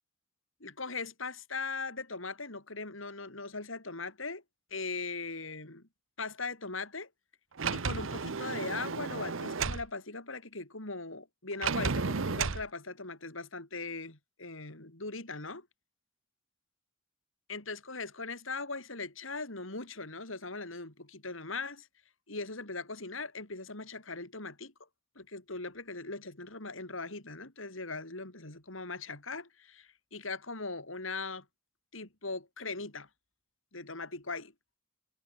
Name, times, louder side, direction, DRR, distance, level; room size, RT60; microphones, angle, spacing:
voice 1, 0.6-4.4 4.7-5.8 6.2-7.1 7.7-15.7 17.5-21.9 22.3-24.7 25.1-31.4 31.9-33.1 33.7-34.5, left 3 dB, 75° left, 5.1 m, -40 dB
Sliding door, 7.6-9.9 11.6-12.6, right 5 dB, 80° right, 0.9 m, -33 dB
head